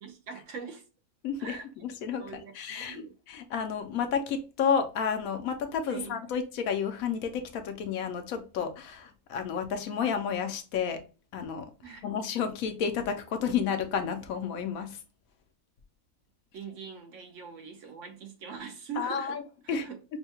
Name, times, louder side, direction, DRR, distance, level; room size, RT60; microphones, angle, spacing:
voice 1, 0.0-0.8 1.4-1.7 2.2-3.1 5.9-6.2 11.8-12.0 16.5-19.4 19.6-20.0, right 6 dB, 65° right, 0.9 m, -42 dB
voice 2, 1.2-1.6 1.8-2.2 2.5-11.0 11.3-11.7 12.0-15.0 19.0-19.4 19.7-19.8, left 6 dB, 70° left, 1.0 m, -31 dB
5.4 x 2.2 x 2.8 m
omnidirectional pair, 1.6 m